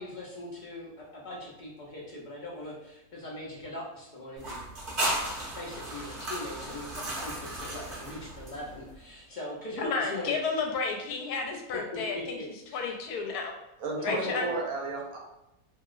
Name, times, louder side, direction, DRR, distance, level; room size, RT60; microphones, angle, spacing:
voice 1, 0.0-4.6 5.4-10.3 11.7-12.9 14.0-14.5, left 1 dB, 55° left, -5 dB, 0.5 m, -41 dB
sound 1, 4.4-8.9, right 1 dB, 45° right, 0.8 m, -35 dB
voice 2, 9.8-12.4 12.7-13.5 14.0-14.5, left 4 dB, 80° left, 2 dB, 1.1 m, -31 dB
voice 3, 13.8-15.2, right 3 dB, 70° right, -1 dB, 1.1 m, -33 dB
2.8 x 2.8 x 2.4 m, 0.92 s
omnidirectional pair, 1.7 m